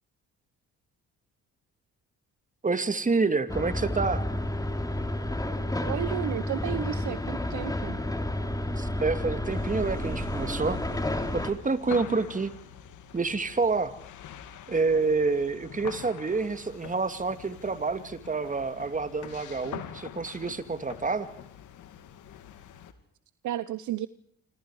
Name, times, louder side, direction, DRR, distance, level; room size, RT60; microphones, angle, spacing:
voice 1, 2.6-4.2 8.8-10.8 11.3-12.5 13.1-13.9 14.7-21.3, right 4 dB, 25° right, 10 dB, 2.4 m, -28 dB
sound 1, 3.5-11.5, left 1 dB, 10° left, 3.7 m, -30 dB
voice 2, 5.9-8.0 12.1-12.2 23.4-24.1, right 13 dB, 70° right, 15 dB, 0.9 m, -33 dB
sound 2, 9.5-22.9, left 9 dB, 80° left, 2.7 m, -45 dB
27.0 x 26.5 x 5.0 m, 0.67 s
cardioid pair, 90°, 30 cm